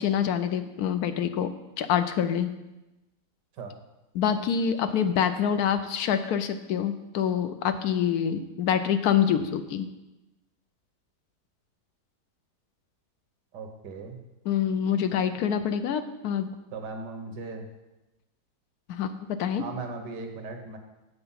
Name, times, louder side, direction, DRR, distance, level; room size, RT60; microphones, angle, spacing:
voice 1, 0.0-1.5 1.8-2.5 4.1-9.9 14.4-16.5 18.9-19.6, left 8 dB, 70° left, 10 dB, 1.1 m, -26 dB
voice 2, 13.5-14.2 16.7-17.7 19.6-20.8, right 3 dB, 85° right, 5 dB, 1.7 m, -37 dB
8.2 x 6.8 x 5.6 m, 1.0 s
omnidirectional pair, 1.8 m